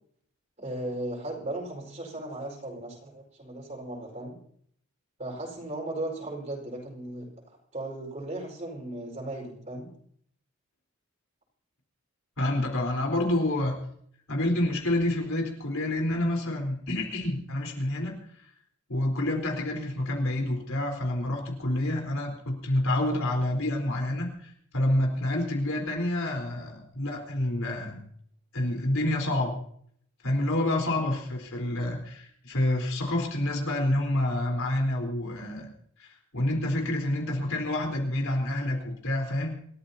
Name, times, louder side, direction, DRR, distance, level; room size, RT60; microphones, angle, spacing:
voice 1, 0.6-4.4 5.2-9.9 30.3-30.5, right 1 dB, 35° right, 0 dB, 4.8 m, -37 dB
voice 2, 12.4-13.8 14.3-18.1 18.9-28.0 28.5-29.5 30.2-35.7 36.0-36.1 36.3-39.5, left 1 dB, 70° left, 1 dB, 4.0 m, -28 dB
27.5 x 13.5 x 2.8 m, 0.63 s
head